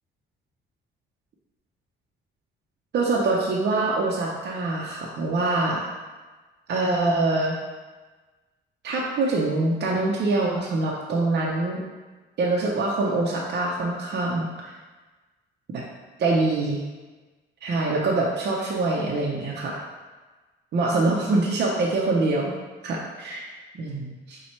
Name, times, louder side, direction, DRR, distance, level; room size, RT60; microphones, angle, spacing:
voice 1, 2.9-5.9 6.7-7.6 8.8-11.8 12.4-14.7 15.7-15.8 16.2-16.8 17.6-19.8 20.7-22.5 22.8-23.5 23.8-24.4, right 2 dB, 60° right, -3 dB, 0.7 m, -24 dB
4.3 x 2.3 x 4.2 m, 1.3 s
cardioid pair, 90°, 20 cm